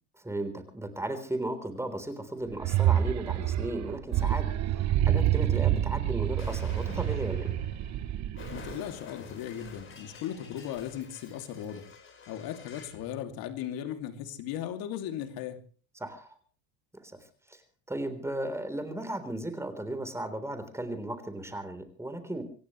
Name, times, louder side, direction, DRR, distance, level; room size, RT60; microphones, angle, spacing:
voice 1, 0.2-4.5 5.1-7.6 16.0-16.3 17.0-17.2 17.5-17.6 17.9-22.4, right 1 dB, 5° right, 9 dB, 3.6 m, -35 dB
sound 1, 2.5-8.8, right 11 dB, 45° right, 1.1 m, -27 dB
Explosion, 6.4-13.0, left 4 dB, 30° left, 4.7 m, -48 dB
voice 2, 8.5-11.9 12.3-15.6, left 10 dB, 60° left, 8 dB, 2.6 m, -37 dB
26.0 x 16.5 x 3.1 m, 0.39 s
supercardioid pair, 110°, 39 cm